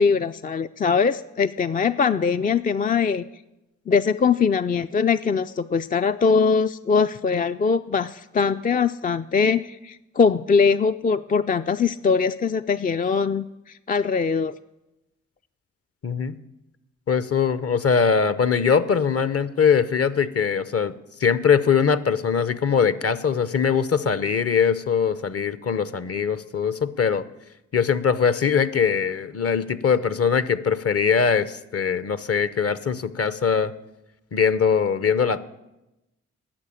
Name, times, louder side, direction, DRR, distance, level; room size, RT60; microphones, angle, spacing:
voice 1, 0.0-3.3 3.9-14.5, left 5 dB, 25° left, 10 dB, 0.4 m, -22 dB
voice 2, 16.0-16.4 17.1-20.9 21.2-27.2 27.7-33.7 34.3-35.4, left 6 dB, 45° left, 15 dB, 0.8 m, -21 dB
11.5 x 6.8 x 8.5 m, 0.96 s
supercardioid pair, 40°, 33 cm